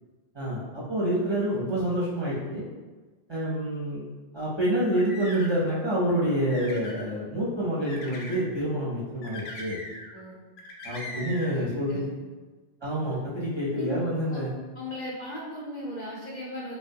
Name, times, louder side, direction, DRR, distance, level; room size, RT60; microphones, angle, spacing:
voice 1, 0.3-2.6 3.3-4.0 4.3-9.8 10.8-12.0 12.8-14.5, equal, 30° right, -8 dB, 0.6 m, -27 dB
sound 1, 4.7-5.7 6.2-7.1 7.9-8.4 9.2-10.2 10.6-11.6, left 1 dB, 85° left, 0.8 m, -40 dB
voice 2, 11.5-12.0 13.0-13.2 13.7-13.9 14.3-14.4 14.7-16.8, left 1 dB, 55° left, -5 dB, 0.6 m, -38 dB
3.4 x 2.2 x 2.6 m, 1.3 s
omnidirectional pair, 1.0 m